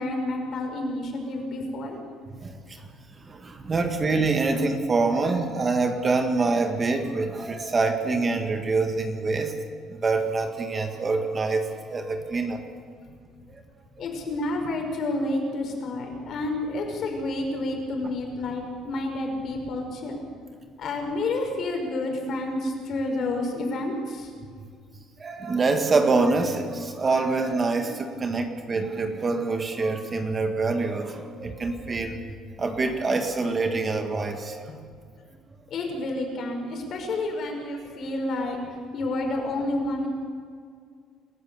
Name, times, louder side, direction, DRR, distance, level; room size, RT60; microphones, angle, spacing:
voice 1, 0.0-2.0 14.0-20.2 20.8-24.3 35.7-38.6 38.9-40.1, left 2 dB, 45° left, 2 dB, 5.4 m, -29 dB
voice 2, 2.4-2.9 3.2-9.6 9.9-12.6 13.5-13.6 25.2-32.2 32.6-34.7, right 3 dB, 25° right, 5 dB, 1.7 m, -25 dB
28.0 x 14.5 x 7.0 m, 2.1 s
cardioid pair, 145°, 0 cm